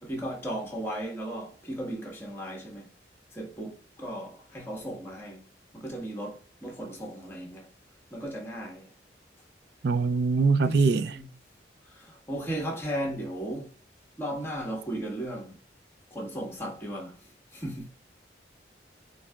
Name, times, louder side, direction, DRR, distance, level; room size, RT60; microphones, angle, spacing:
voice 1, 0.0-2.9 3.3-5.5 5.7-7.7 8.1-8.9 10.6-11.3 11.8-13.7 14.2-15.6 16.1-17.9, right 1 dB, 15° left, 1.5 m, -36 dB
voice 2, 9.8-11.2, right 4 dB, 60° right, 0.4 m, -23 dB
4.7 x 4.4 x 2.2 m
head